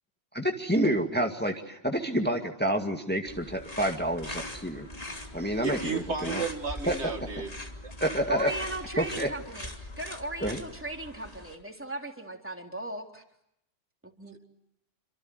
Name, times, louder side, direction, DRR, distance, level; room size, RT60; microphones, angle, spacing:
voice 1, 0.3-4.9 5.3-6.4 6.9-7.0 8.0-8.5 9.0-9.3 10.4-10.6, right 1 dB, 10° left, 4 dB, 2.1 m, -28 dB
sound 1, 3.3-11.5, left 1 dB, 30° left, 2.9 m, -41 dB
voice 2, 5.6-7.5 7.8-7.9, right 5 dB, 65° right, 6 dB, 2.5 m, -33 dB
voice 3, 8.3-13.2 14.0-14.4, right 1 dB, 10° right, 3 dB, 3.7 m, -37 dB
28.0 x 26.0 x 8.0 m, 0.78 s
omnidirectional pair, 1.3 m